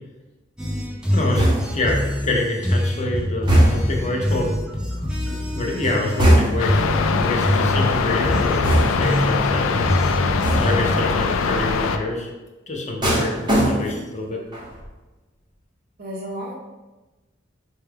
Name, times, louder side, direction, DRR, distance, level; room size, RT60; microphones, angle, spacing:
sound 1, 0.6-11.1, left 1 dB, 5° right, 0.4 m, -24 dB
voice 1, 1.1-1.5 1.7-4.6 5.3-9.8 10.6-12.3 12.7-13.3 13.7-14.4, left 2 dB, 35° left, 0 dB, 0.6 m, -26 dB
Knocking out the door by foot, 1.3-1.9 3.5-4.1 6.2-6.8 8.6-9.2 10.4-10.9 13.0-14.1 14.5-14.9, right 1 dB, 25° right, 0.8 m, -19 dB
Far ambiance at Luzech, 6.6-12.0, left 5 dB, 85° left, 0.3 m, -22 dB
voice 2, 16.0-16.6, equal, 50° right, -1 dB, 0.6 m, -34 dB
4.5 x 2.2 x 3.3 m, 1.1 s
head